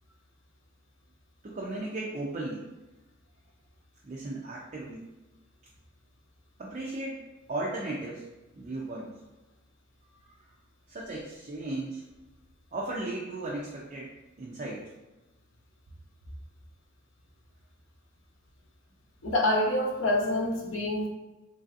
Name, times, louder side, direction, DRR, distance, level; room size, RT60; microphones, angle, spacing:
voice 1, 1.4-2.7 4.0-5.0 6.6-7.2 7.5-8.3 8.6-9.1 10.0-10.4 10.9-12.1 12.7-14.1 14.4-14.8, right 2 dB, 35° right, -4 dB, 0.4 m, -36 dB
voice 2, 19.2-21.1, left 1 dB, 65° left, -1 dB, 0.6 m, -26 dB
3.1 x 2.6 x 2.4 m, 1.1 s
head